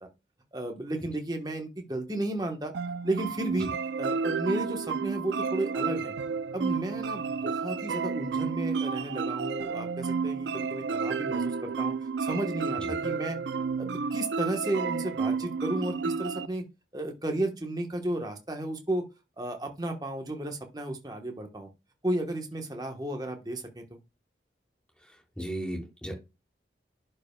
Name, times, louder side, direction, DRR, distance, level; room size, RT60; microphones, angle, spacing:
voice 1, 0.5-2.7 3.0-3.7 4.0-6.1 6.5-11.9 12.2-13.4 13.8-16.6 16.9-19.0 19.4-21.7 22.0-24.0, right 1 dB, 20° right, 4 dB, 1.1 m, -33 dB
sound 1, 2.7-16.5, right 5 dB, 80° right, 0.4 m, -31 dB
voice 2, 25.1-26.1, right 1 dB, 5° left, -1 dB, 2.8 m, -36 dB
11.0 x 5.5 x 2.3 m, 0.26 s
head